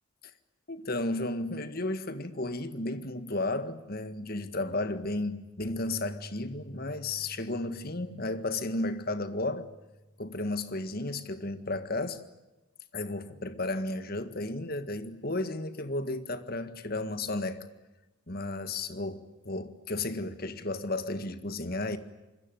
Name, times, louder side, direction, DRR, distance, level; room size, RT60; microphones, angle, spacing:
voice 1, 0.7-9.7 10.2-12.2 12.9-17.7 18.3-22.0, left 2 dB, 45° left, 1.8 m, -33 dB
Bass guitar, 5.6-11.9, right 1 dB, ahead, 2.6 m, -50 dB
26.0 x 22.0 x 9.1 m
head